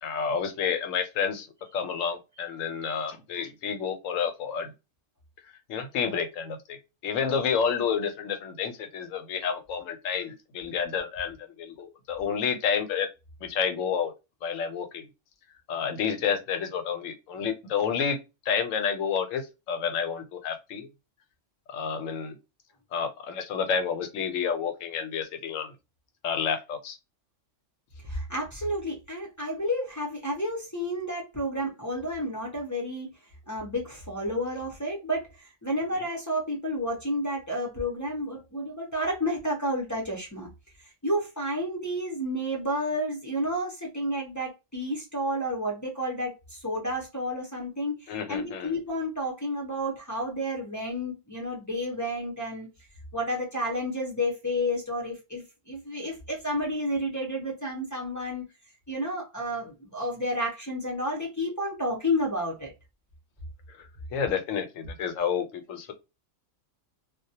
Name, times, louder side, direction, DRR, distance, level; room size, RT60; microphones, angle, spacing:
voice 1, 0.0-1.5 1.7-4.7 5.7-6.8 7.0-13.1 13.4-14.1 14.4-15.1 15.7-18.2 18.5-20.9 21.7-22.4 22.9-25.7 26.2-27.0 48.1-48.8 63.7-65.9, left 7 dB, 85° left, 1.0 m, -30 dB
voice 2, 28.1-33.1 33.5-40.5 41.0-52.7 53.1-58.4 58.9-62.7, equal, 20° left, 0.5 m, -31 dB
2.2 x 2.1 x 2.7 m
omnidirectional pair, 1.3 m